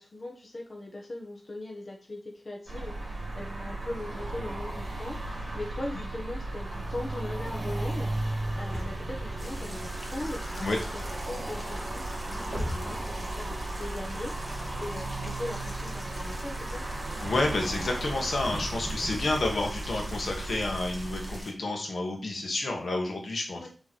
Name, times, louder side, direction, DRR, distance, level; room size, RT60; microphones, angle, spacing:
voice 1, 0.0-10.7 10.9-16.8 23.6-23.7, left 1 dB, 45° left, -1 dB, 1.3 m, -40 dB
sound 1, 2.7-21.4, right 2 dB, 45° right, 3.0 m, -36 dB
Bus, 8.5-20.9, equal, 25° right, 3.3 m, -41 dB
sound 2, 9.4-21.5, equal, ahead, 1.7 m, -46 dB
voice 2, 17.2-23.7, left 2 dB, 75° left, 1 dB, 1.7 m, -30 dB
7.0 x 3.6 x 4.6 m, 0.36 s
wide cardioid pair, 95°, 0 cm